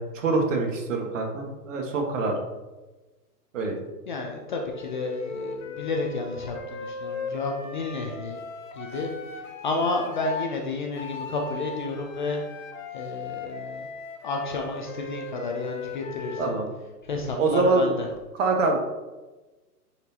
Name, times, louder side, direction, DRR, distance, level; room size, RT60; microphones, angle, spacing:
voice 1, 0.0-2.3 3.5-3.7 16.4-16.7 17.4-17.9 18.4-18.8, right 3 dB, 50° right, 2 dB, 1.6 m, -25 dB
voice 2, 4.1-8.4 8.8-9.1 9.6-12.4 12.9-13.8 14.2-16.4 17.1-18.1, left 3 dB, 30° left, 2 dB, 0.6 m, -31 dB
Wind instrument woodwind instrument, 4.7-10.5 10.9-16.6, left 4 dB, 55° left, 1.1 m, -38 dB
10.0 x 4.5 x 2.8 m, 1.2 s
hypercardioid pair, 155°, 48 cm